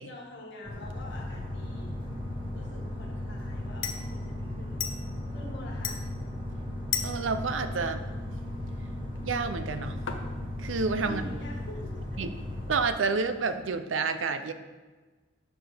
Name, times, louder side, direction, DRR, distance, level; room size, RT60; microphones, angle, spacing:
voice 1, 0.0-1.9 2.5-4.8 5.3-6.0 11.0-12.3, left 1 dB, 65° left, -1 dB, 1.8 m, -45 dB
sound 1, 0.6-12.8, left 1 dB, 25° right, 1.6 m, -36 dB
sound 2, 0.9-13.7, left 8 dB, 85° left, 0.8 m, -42 dB
Organ, 1.3-12.0, right 3 dB, 25° left, 0.9 m, -47 dB
voice 2, 7.0-8.0 9.2-10.0 10.6-11.2 12.2-12.3 12.7-14.5, right 4 dB, 80° right, 10 dB, 0.6 m, -29 dB
7.0 x 6.1 x 5.0 m, 1.3 s
head